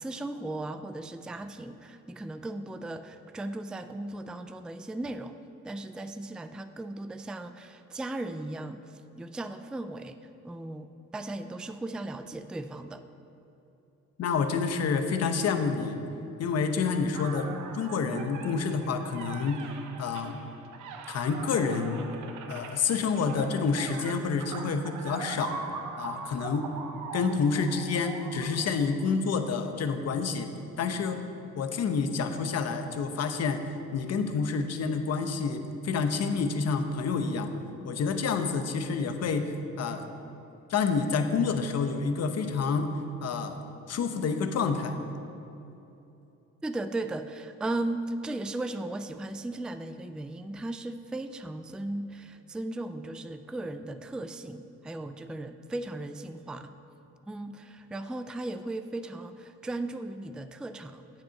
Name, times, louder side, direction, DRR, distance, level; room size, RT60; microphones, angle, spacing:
voice 1, 0.0-5.3 5.6-10.2 10.4-10.9 11.1-13.0 46.6-56.7 57.3-61.0, right 2 dB, 5° right, 9 dB, 0.3 m, -36 dB
voice 2, 14.2-16.0 16.4-19.7 20.0-20.4 21.1-22.1 22.5-25.6 26.0-26.7 27.1-30.5 30.8-31.2 31.5-33.6 33.9-37.5 37.8-39.5 39.8-40.1 40.7-42.9 43.2-43.6 43.9-45.0, left 5 dB, 55° left, 7 dB, 0.9 m, -28 dB
sound 1, 17.1-29.4, right 5 dB, 80° right, 0.8 m, -42 dB
7.7 x 7.4 x 5.8 m, 2.9 s
cardioid pair, 90°, 30 cm